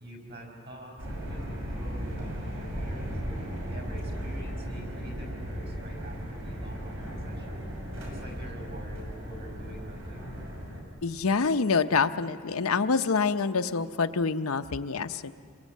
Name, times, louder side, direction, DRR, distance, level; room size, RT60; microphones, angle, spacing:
voice 1, 0.0-3.2 3.6-7.7 8.0-10.3, equal, 50° right, 1 dB, 5.6 m, -46 dB
sound 1, 1.0-10.8, equal, 65° right, 6.4 m, -36 dB
voice 2, 11.0-15.3, left 4 dB, 85° left, 9 dB, 0.7 m, -26 dB
28.0 x 22.0 x 8.4 m, 2.3 s
head